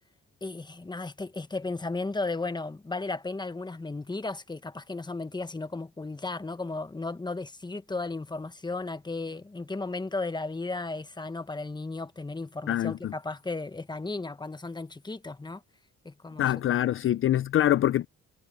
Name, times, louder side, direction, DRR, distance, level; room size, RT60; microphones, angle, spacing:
voice 1, 0.4-15.6 16.0-16.4, left 3 dB, 15° left, 1.2 m, -35 dB
voice 2, 12.7-13.1 16.4-18.1, left 12 dB, 45° left, 0.4 m, -24 dB
cardioid pair, 90°, 30 cm